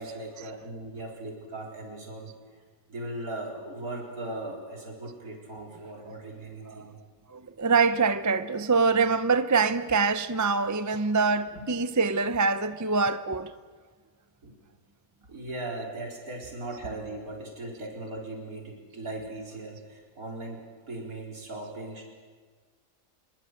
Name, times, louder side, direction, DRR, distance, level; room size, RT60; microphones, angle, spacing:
voice 1, 0.0-2.3 2.9-7.1 11.5-11.6 14.4-14.6 15.2-22.0, right 2 dB, 80° right, 4.5 m, -38 dB
voice 2, 7.3-13.5, right 4 dB, 20° right, 0.5 m, -25 dB
26.0 x 22.0 x 7.9 m
omnidirectional pair, 1.5 m